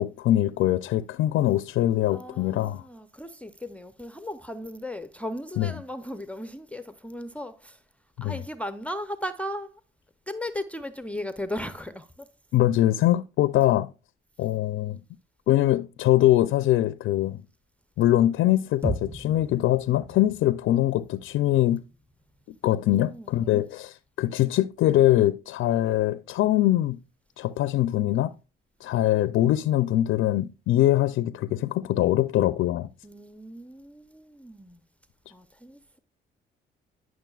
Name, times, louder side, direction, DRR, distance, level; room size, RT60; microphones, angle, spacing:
voice 1, 0.0-2.8 5.6-5.7 8.2-8.3 12.5-13.9 14.4-15.0 15.5-17.4 18.0-21.8 22.6-27.0 27.4-28.3 28.8-32.9, left 14 dB, 70° left, 0.4 m, -23 dB
voice 2, 2.1-7.8 8.2-9.8 10.3-12.3 22.7-23.6 33.0-34.8 35.3-36.0, left 1 dB, 5° left, 0.6 m, -37 dB
sound 1, 18.8-23.2, right 1 dB, 15° right, 2.7 m, -38 dB
10.0 x 6.2 x 2.3 m
cardioid pair, 75°, 21 cm